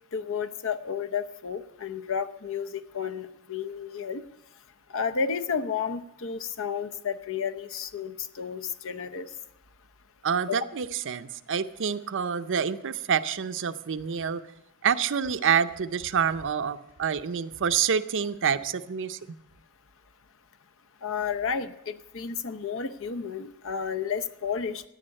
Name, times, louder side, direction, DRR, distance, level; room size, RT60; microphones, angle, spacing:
voice 1, 0.1-4.2 4.9-9.3 10.5-10.6 21.0-24.8, left 6 dB, 65° left, 12 dB, 0.7 m, -32 dB
voice 2, 10.2-14.4 14.8-19.2, right 7 dB, 60° right, 11 dB, 0.6 m, -27 dB
14.0 x 9.7 x 6.4 m, 0.86 s
head